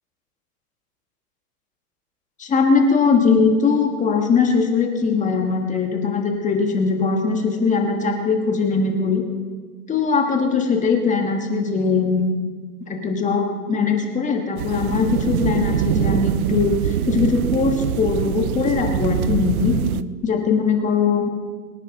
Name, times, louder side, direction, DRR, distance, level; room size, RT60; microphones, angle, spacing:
voice 1, 2.4-9.2 9.9-12.3 12.9-19.8 20.2-21.3, left 5 dB, 15° left, 2 dB, 1.7 m, -20 dB
sound 1, 14.6-20.0, right 11 dB, 70° right, 0.8 m, -24 dB
24.5 x 9.7 x 3.9 m, 1.5 s
hypercardioid pair, 130°, 45 cm